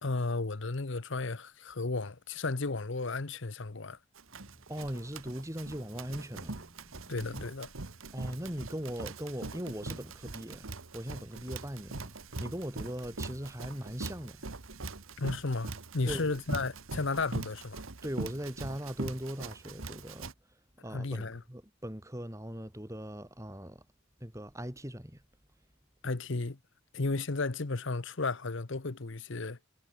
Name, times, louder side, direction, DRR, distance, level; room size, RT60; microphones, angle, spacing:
voice 1, 0.0-4.0 7.1-7.7 15.2-17.8 20.9-21.4 26.0-26.6 26.9-29.6, left 3 dB, 60° left, 1.0 m, -34 dB
Run, 4.2-20.3, right 3 dB, 75° right, 1.6 m, -42 dB
voice 2, 4.7-7.2 8.1-10.7 10.9-12.1 12.4-14.4 16.0-16.4 18.0-20.3 20.8-23.8 24.2-25.2, equal, 15° right, 3.1 m, -40 dB
head